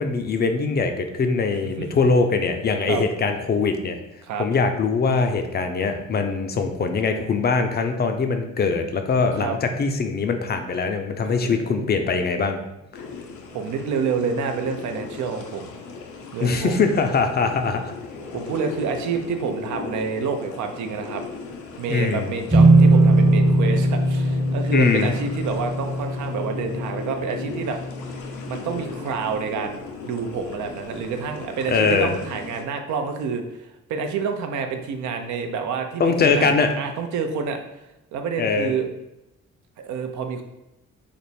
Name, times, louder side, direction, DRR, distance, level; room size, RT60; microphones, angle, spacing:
voice 1, 0.0-4.0 4.4-12.6 16.4-17.9 21.9-22.3 24.7-25.1 31.7-32.1 36.0-36.7 38.4-38.7, left 4 dB, 35° left, 6 dB, 0.4 m, -22 dB
voice 2, 11.2-12.0 13.5-15.7 16.3-16.8 18.3-21.2 21.8-27.8 28.5-36.5 36.8-37.6 38.1-38.9 39.8-40.4, right 5 dB, 75° right, 5 dB, 0.5 m, -28 dB
sound 1, 12.9-32.6, left 4 dB, 75° left, 0.6 m, -38 dB
sound 2, 22.5-28.1, right 2 dB, 20° right, 0.8 m, -19 dB
3.4 x 2.0 x 4.1 m, 0.91 s
cardioid pair, 90°, 30 cm